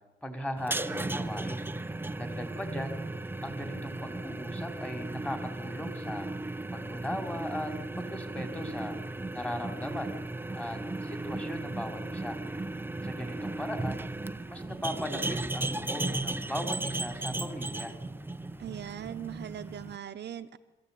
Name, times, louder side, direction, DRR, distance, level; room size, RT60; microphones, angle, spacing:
voice 1, 0.2-1.6 2.1-3.0 3.4-6.3 6.7-9.0 9.3-10.2 10.5-12.4 13.0-14.0 14.5-17.9, left 1 dB, 5° left, 6 dB, 4.1 m, -38 dB
sound 1, 0.6-20.0, right 2 dB, 10° right, 0.9 m, -36 dB
voice 2, 18.6-20.6, right 10 dB, 60° right, 8 dB, 1.1 m, -40 dB
25.5 x 15.0 x 8.7 m, 1.1 s
cardioid pair, 90°, 20 cm